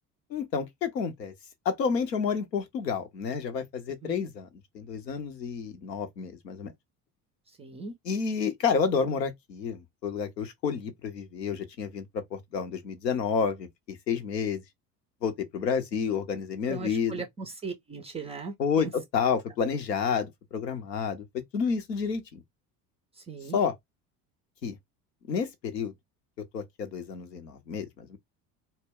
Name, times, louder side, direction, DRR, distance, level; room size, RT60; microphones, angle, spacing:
voice 1, 0.3-1.3 1.7-4.5 4.7-6.7 8.0-12.0 12.3-14.6 15.2-17.2 18.6-21.2 21.5-22.4 23.5-23.7 24.6-24.8 25.3-25.9 26.5-28.2, left 6 dB, 85° left, 0.7 m, -30 dB
voice 2, 7.6-7.9 16.7-18.9 23.3-23.6, right 4 dB, 15° right, 0.3 m, -38 dB
2.1 x 2.1 x 3.5 m
figure-of-eight pair, 65°, 48 cm